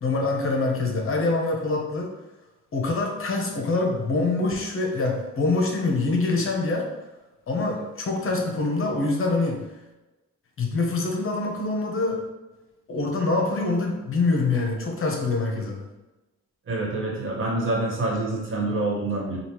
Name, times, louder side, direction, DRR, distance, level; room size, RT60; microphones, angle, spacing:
voice 1, 0.0-2.1 2.7-6.9 7.5-9.6 10.6-12.2 12.9-15.8, left 3 dB, 45° left, 0 dB, 0.9 m, -25 dB
voice 2, 16.7-19.4, right 2 dB, 45° right, -2 dB, 1.4 m, -26 dB
5.1 x 2.4 x 3.0 m, 1.1 s
cardioid pair, 90°, 30 cm